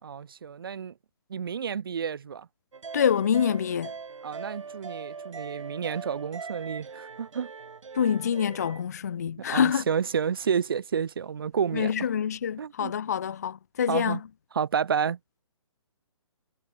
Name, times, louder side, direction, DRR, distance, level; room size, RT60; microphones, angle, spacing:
voice 1, 0.0-0.9 1.3-2.5 4.2-7.5 9.4-12.1 12.6-12.9 13.9-14.2 14.5-15.2, right 7 dB, 45° right, 4.1 m, -30 dB
sound 1, 2.7-8.8, right 5 dB, 80° right, 7.9 m, -41 dB
voice 2, 2.9-3.9 7.9-9.8 11.7-14.2, left 8 dB, 30° left, 0.7 m, -26 dB
hypercardioid pair, 180°, 16 cm